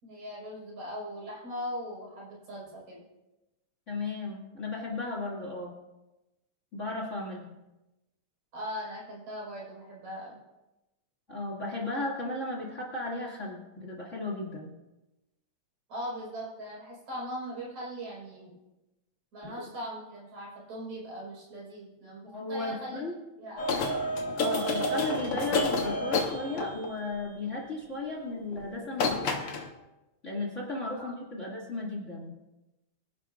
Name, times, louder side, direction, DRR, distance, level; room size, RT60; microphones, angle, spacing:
voice 1, 0.0-3.0 8.5-10.4 15.9-18.6 19.3-23.0 23.4-23.7 31.0-31.1, equal, 75° right, -4 dB, 6.3 m, -40 dB
voice 2, 3.9-5.7 6.7-7.5 11.3-14.7 19.4-19.5 22.2-23.2 24.4-29.4 30.2-32.3, left 2 dB, 25° left, -3 dB, 2.4 m, -35 dB
sound 1, 23.6-27.0 28.5-28.7 28.9-29.7, left 2 dB, 55° left, 1.9 m, -29 dB
24.5 x 11.0 x 2.5 m, 1.0 s
omnidirectional pair, 3.3 m